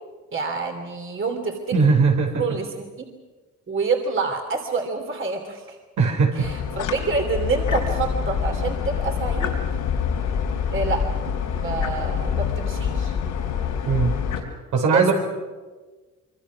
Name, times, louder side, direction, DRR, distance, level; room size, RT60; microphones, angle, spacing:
voice 1, 0.3-1.8 2.3-2.9 3.7-5.8 6.3-9.6 10.7-11.0 11.5-13.1 14.9-15.1, right 4 dB, 40° right, 3 dB, 3.0 m, -27 dB
voice 2, 1.7-2.4 6.0-6.5 13.9-14.2 14.7-15.1, right 4 dB, 80° right, 1 dB, 5.2 m, -19 dB
sound 1, 6.4-14.4, left 7 dB, 85° left, 4.0 m, -26 dB
24.5 x 24.5 x 6.1 m, 1.3 s
cardioid pair, 90°, 30 cm